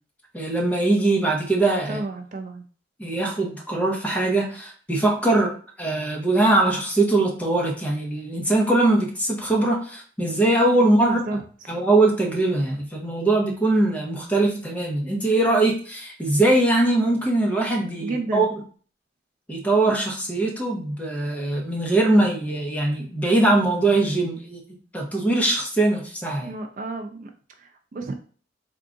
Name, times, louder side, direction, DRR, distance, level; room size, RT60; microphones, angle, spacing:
voice 1, 0.3-2.0 3.0-11.4 11.7-18.5 19.5-24.6 24.9-26.5, right 2 dB, 10° left, -1 dB, 0.8 m, -21 dB
voice 2, 1.9-2.7 10.8-11.8 18.0-18.5 26.4-28.1, right 2 dB, 45° right, 5 dB, 0.4 m, -32 dB
3.6 x 2.3 x 3.7 m, 0.43 s
head